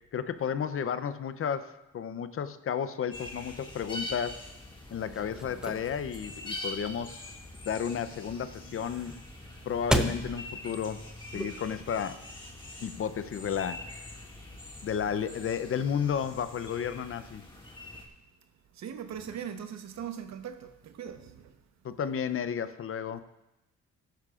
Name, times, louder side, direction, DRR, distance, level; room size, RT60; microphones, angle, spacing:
voice 1, 0.1-4.4 4.9-7.3 7.6-9.1 9.6-11.0 11.3-12.2 12.8-14.1 14.8-17.4 21.8-23.2, left 7 dB, 45° left, 0.6 m, -32 dB
sound 1, 3.1-18.1, left 1 dB, 15° left, 2.0 m, -44 dB
sound 2, 4.9-11.9, right 1 dB, ahead, 0.7 m, -36 dB
voice 2, 18.8-21.4, right 8 dB, 65° right, 1.0 m, -40 dB
14.5 x 11.5 x 2.4 m
cardioid pair, 90°, 30 cm